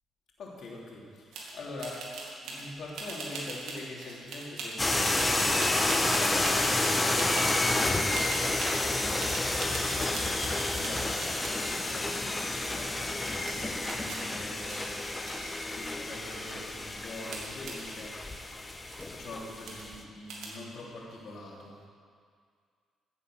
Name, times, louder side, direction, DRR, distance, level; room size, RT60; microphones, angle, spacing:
voice 1, 0.4-2.1 2.4-4.9 5.2-6.6 7.0-18.2 19.1-21.7, left 2 dB, 60° left, -3 dB, 3.3 m, -44 dB
sound 1, 1.3-1.5 1.8-2.6 2.9-7.9 8.1-8.8 9.2-11.6 11.9-12.5 13.1-13.2 13.5-15.8 16.1-16.7 17.3-17.8 18.5-18.6 18.8-19.1 19.7-20.0 20.3-20.5, right 2 dB, 85° right, 2.5 m, -41 dB
sound 2, 4.8-20.0, left 2 dB, 20° left, 1.2 m, -30 dB
16.0 x 7.9 x 6.4 m, 2.1 s
cardioid pair, 90°, 0 cm